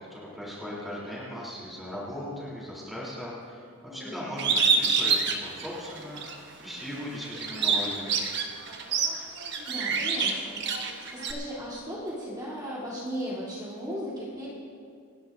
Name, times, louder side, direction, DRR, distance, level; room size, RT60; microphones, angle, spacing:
voice 1, 0.1-3.6 3.9-6.2 6.6-8.1 9.9-10.0, left 1 dB, ahead, -7 dB, 3.5 m, -38 dB
voice 2, 3.9-4.4 9.2-14.5, equal, 20° right, -8 dB, 3.4 m, -37 dB
Bird, 4.4-6.4 6.8-11.3, right 5 dB, 50° right, 1.2 m, -27 dB
29.0 x 11.5 x 2.7 m, 2.3 s
head